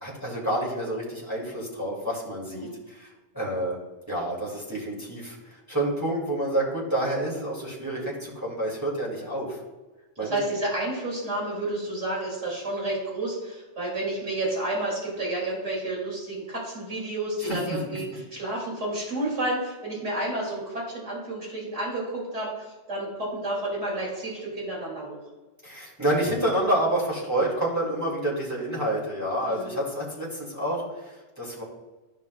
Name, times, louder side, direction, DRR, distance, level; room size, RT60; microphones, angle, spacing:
voice 1, 0.0-3.1 3.3-3.8 4.1-9.6 10.2-10.4 17.4-17.8 25.6-31.6, right 1 dB, 15° right, -6 dB, 2.3 m, -28 dB
voice 2, 10.2-25.2 29.4-29.7, right 1 dB, 90° right, -4 dB, 2.9 m, -31 dB
13.0 x 5.3 x 2.3 m, 1.2 s
omnidirectional pair, 1.2 m